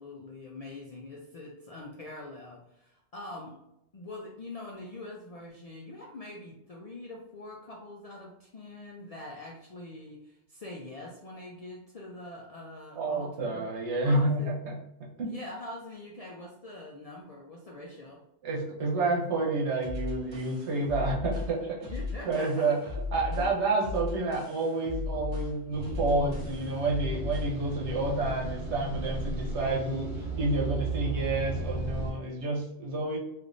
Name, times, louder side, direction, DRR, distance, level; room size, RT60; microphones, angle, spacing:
voice 1, 0.0-3.6 3.9-13.7 14.0-14.5 15.2-18.2 21.9-22.7 23.3-23.5, left 2 dB, 60° left, -2 dB, 0.3 m, -44 dB
voice 2, 12.9-14.8 15.2-15.3 18.4-21.9 22.3-22.8 23.1-33.2, right 2 dB, 90° right, -1 dB, 1.1 m, -29 dB
sound 1, 19.8-27.6, left 3 dB, 50° right, 1.0 m, -36 dB
sound 2, 25.7-32.1, right 3 dB, 65° right, 1.5 m, -35 dB
3.3 x 2.5 x 2.5 m, 0.84 s
omnidirectional pair, 1.1 m